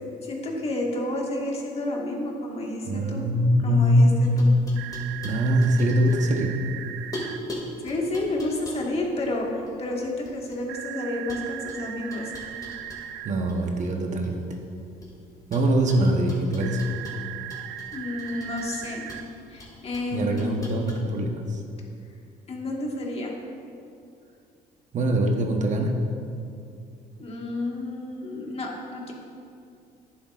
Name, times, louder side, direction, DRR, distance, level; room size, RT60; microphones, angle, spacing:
voice 1, 0.2-3.2 3.6-4.5 7.8-12.3 17.9-19.0 19.5-20.9 22.5-23.3 27.2-29.1, left 2 dB, 35° left, -1 dB, 1.6 m, -30 dB
voice 2, 2.9-4.6 5.2-6.6 13.2-14.5 15.5-16.9 20.1-21.6 24.9-26.0, equal, 45° right, 3 dB, 1.0 m, -22 dB
sound 1, 3.9-6.7 7.1-10.8 11.3-13.6 13.8-15.1 15.5-21.0, left 1 dB, 20° left, 2.2 m, -42 dB
sound 2, 4.8-7.4 10.7-13.3 16.6-19.2, right 12 dB, 85° right, 0.5 m, -38 dB
11.0 x 10.5 x 2.5 m, 2.5 s
cardioid pair, 110°, 17 cm